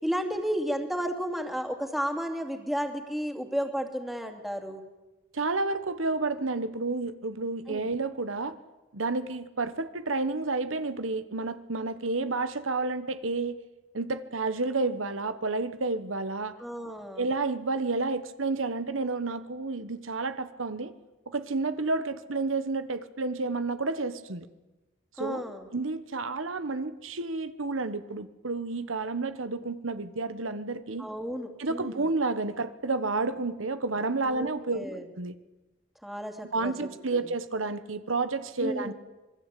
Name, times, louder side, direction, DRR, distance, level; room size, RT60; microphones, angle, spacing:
voice 1, 0.0-4.8 7.7-7.9 16.6-17.3 25.2-25.7 31.0-32.1 34.3-35.0 36.0-36.7 37.1-37.2 38.6-38.9, equal, ahead, 5 dB, 2.7 m, -33 dB
voice 2, 5.3-8.6 8.9-13.6 13.9-16.5 17.2-20.9 21.3-24.5 25.2-31.1 31.6-34.9 35.2-35.3 36.5-38.9, right 3 dB, 90° right, 12 dB, 1.3 m, -30 dB
26.5 x 21.5 x 8.5 m, 1.1 s
head